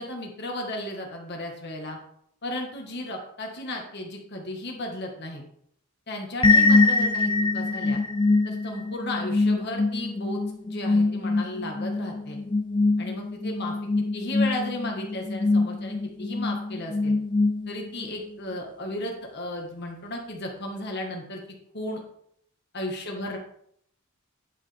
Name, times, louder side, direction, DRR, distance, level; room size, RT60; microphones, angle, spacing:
voice 1, 0.0-2.0 2.4-5.4 6.1-8.0 8.4-12.4 13.0-17.1 17.7-21.4 21.7-22.0 22.7-23.4, left 1 dB, 50° left, 1 dB, 1.6 m, -35 dB
sound 1, 6.4-18.1, left 3 dB, 20° left, 0.4 m, -24 dB
10.0 x 6.3 x 3.5 m, 0.68 s
head